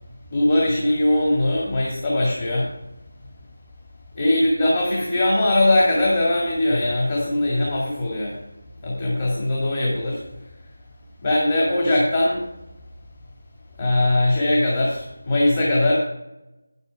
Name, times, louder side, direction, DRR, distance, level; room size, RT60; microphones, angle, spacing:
voice 1, 0.3-2.7 4.1-8.4 8.8-10.2 11.2-12.4 13.8-16.0, left 1 dB, 25° left, -4 dB, 2.0 m, -20 dB
9.5 x 8.3 x 4.7 m, 0.94 s
figure-of-eight pair, 170°, 0 cm